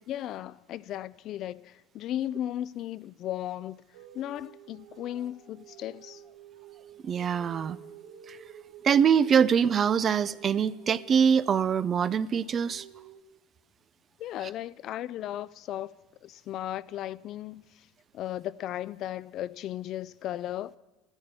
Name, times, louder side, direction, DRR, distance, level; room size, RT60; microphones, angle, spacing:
voice 1, 0.1-3.8 4.1-6.2 14.2-15.9 16.2-17.9 18.1-20.7, left 12 dB, 50° left, 0.5 m, -36 dB
sound 1, 3.9-13.2, right 9 dB, 85° right, 2.4 m, -51 dB
voice 2, 7.0-7.8 8.3-8.4 8.8-12.9, right 7 dB, 30° right, 0.5 m, -24 dB
13.5 x 13.5 x 7.0 m
supercardioid pair, 115°, 0 cm